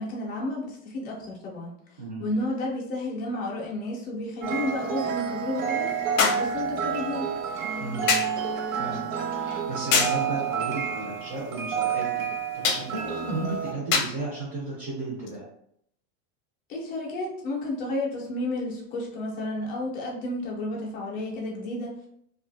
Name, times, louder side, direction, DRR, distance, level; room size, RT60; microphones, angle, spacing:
voice 1, 0.0-1.7 2.2-5.9 6.2-7.3 16.7-22.1, left 1 dB, 20° left, -3 dB, 0.5 m, -31 dB
sound 1, 2.4-2.5 6.2-6.5 8.1-8.4 9.9-10.2 12.6-12.9 13.9-14.2 15.3-15.4, left 5 dB, 65° left, 0.6 m, -24 dB
sound 2, 4.4-13.7, right 7 dB, 90° right, 0.7 m, -29 dB
voice 2, 7.8-8.2 8.8-12.3 12.5-15.5, right 2 dB, 25° right, -8 dB, 0.7 m, -34 dB
2.7 x 2.4 x 2.6 m, 0.69 s
supercardioid pair, 175°, 39 cm